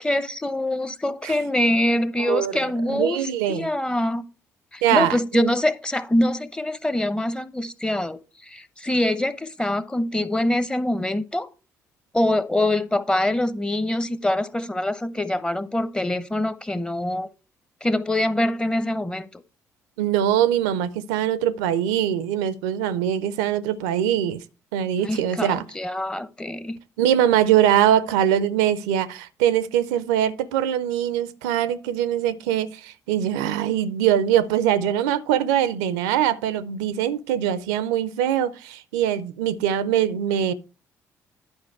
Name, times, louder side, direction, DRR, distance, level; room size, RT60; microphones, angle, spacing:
voice 1, 0.0-4.2 4.7-8.2 8.5-11.5 12.1-17.3 17.8-19.3 25.0-26.8, left 1 dB, 10° left, 0.7 m, -24 dB
voice 2, 2.2-2.5 2.9-3.7 4.8-5.5 20.0-24.4 24.7-25.7 27.0-40.5, right 10 dB, 70° right, 0.5 m, -22 dB
10.5 x 5.0 x 4.6 m
figure-of-eight pair, 45°, 9 cm